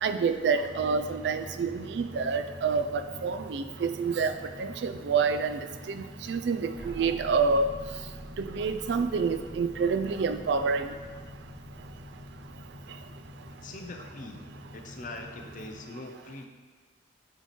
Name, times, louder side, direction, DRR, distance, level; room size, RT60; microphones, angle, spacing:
voice 1, 0.0-4.3 4.6-5.6 5.9-7.7 8.4-10.9, right 5 dB, 70° right, 8 dB, 0.4 m, -28 dB
sound 1, 0.6-15.8, left 1 dB, 90° right, 1.9 m, -46 dB
sound 2, 6.7-13.7, equal, 20° right, 0.8 m, -47 dB
voice 2, 13.6-16.5, left 2 dB, 45° left, 3 dB, 0.6 m, -42 dB
8.0 x 3.1 x 4.2 m, 1.5 s
head